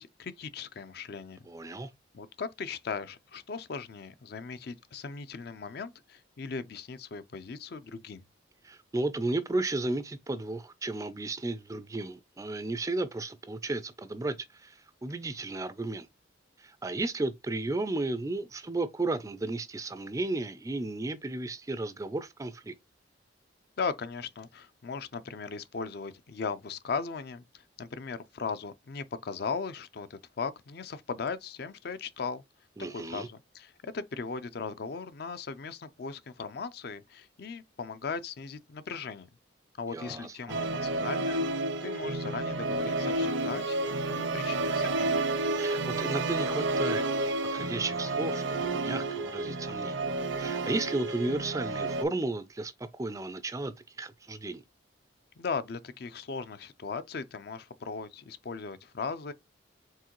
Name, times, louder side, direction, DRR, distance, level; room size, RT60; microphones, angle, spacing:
voice 1, 0.0-1.8 2.1-8.2 23.8-32.4 32.9-39.3 39.8-43.8 44.1-45.2 55.4-59.3, left 5 dB, 55° left, 0.4 m, -38 dB
voice 2, 1.5-1.9 8.6-16.1 16.6-22.7 32.8-33.3 39.9-40.6 45.5-50.0 50.4-54.6, right 2 dB, 15° right, 0.3 m, -34 dB
Musical instrument, 40.5-52.0, right 2 dB, 75° right, 0.6 m, -30 dB
4.6 x 3.7 x 3.0 m
head